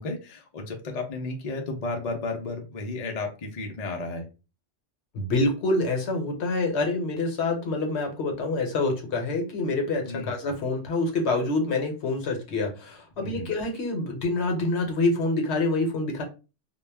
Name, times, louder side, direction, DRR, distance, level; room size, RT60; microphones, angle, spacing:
voice 1, 0.0-4.3 10.1-10.3 13.2-13.5, left 3 dB, 50° left, 2 dB, 0.5 m, -33 dB
voice 2, 5.1-16.2, left 2 dB, 65° left, 3 dB, 0.9 m, -26 dB
2.2 x 2.1 x 3.2 m, 0.31 s
omnidirectional pair, 1.2 m